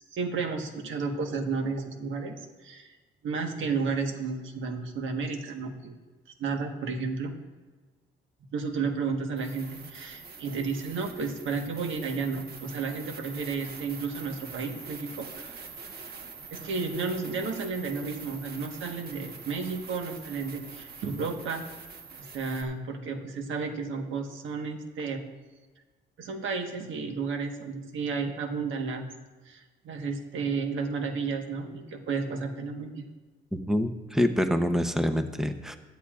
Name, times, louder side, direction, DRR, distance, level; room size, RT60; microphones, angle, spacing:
voice 1, 0.0-2.4 2.6-2.9 3.2-5.9 6.4-7.4 8.5-15.6 16.5-21.6 22.3-25.2 26.2-29.1 29.4-33.0, right 4 dB, 75° right, 4 dB, 1.4 m, -32 dB
sound 1, 9.3-22.6, right 5 dB, 55° right, 1.3 m, -44 dB
voice 2, 33.7-35.7, equal, ahead, 7 dB, 0.8 m, -26 dB
16.5 x 11.0 x 2.5 m, 1.3 s
cardioid pair, 90°, 20 cm